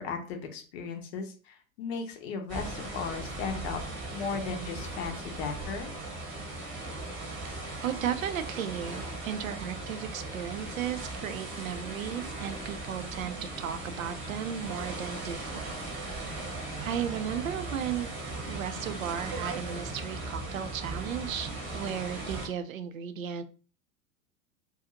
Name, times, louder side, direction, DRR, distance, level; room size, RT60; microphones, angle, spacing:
voice 1, 0.0-3.8 4.1-5.9, left 5 dB, 45° left, 4 dB, 0.7 m, -36 dB
sound 1, 2.5-22.5, right 2 dB, 25° right, 1.0 m, -38 dB
voice 2, 7.8-16.4 16.8-18.1 18.5-23.4, right 9 dB, 70° right, 10 dB, 0.5 m, -35 dB
2.5 x 2.3 x 2.8 m, 0.37 s
figure-of-eight pair, 90°, 43 cm